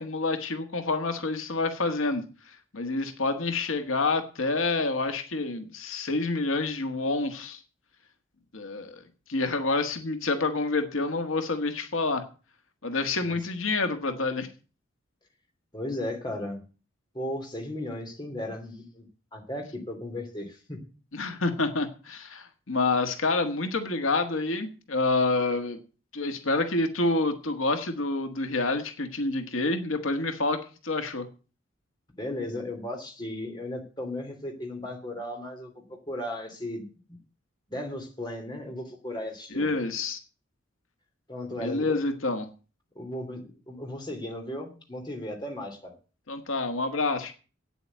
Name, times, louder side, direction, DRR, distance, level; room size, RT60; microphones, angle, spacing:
voice 1, 0.0-7.6 8.5-9.0 9.3-12.2 12.8-14.5 21.1-25.8 26.1-31.3 39.5-40.2 41.6-42.5 46.3-47.3, left 3 dB, 85° left, 7 dB, 1.6 m, -28 dB
voice 2, 15.7-16.6 17.1-19.1 19.3-20.8 32.2-37.2 37.7-39.7 41.3-42.0 42.9-45.9, left 1 dB, 20° left, 2 dB, 2.9 m, -36 dB
8.9 x 8.0 x 9.3 m, 0.36 s
head